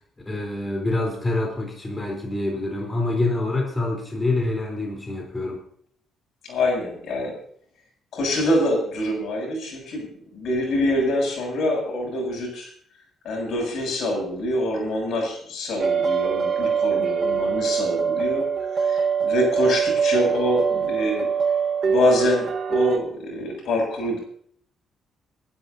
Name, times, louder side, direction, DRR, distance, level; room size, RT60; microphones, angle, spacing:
voice 1, 0.3-5.6, left 2 dB, 20° left, 0 dB, 4.0 m, -26 dB
voice 2, 6.4-7.4 8.1-12.7 13.2-18.5 18.8-21.3 21.8-24.2, left 1 dB, 70° left, 0 dB, 7.6 m, -25 dB
sound 1, 15.8-23.0, right 6 dB, 50° right, 1.5 m, -23 dB
25.0 x 12.0 x 2.8 m, 0.62 s
cardioid pair, 90°, 0 cm